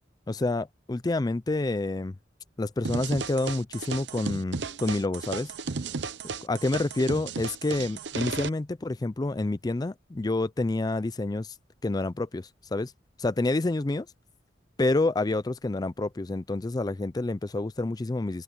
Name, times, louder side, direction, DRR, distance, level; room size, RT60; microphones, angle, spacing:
voice 1, 0.3-2.1 2.6-5.5 6.4-11.6 11.8-12.9 13.2-14.1 14.8-18.4, left 2 dB, 20° left, 0.4 m, -28 dB
sound 1, 2.8-8.5, right 4 dB, 90° right, 0.8 m, -34 dB
open air
head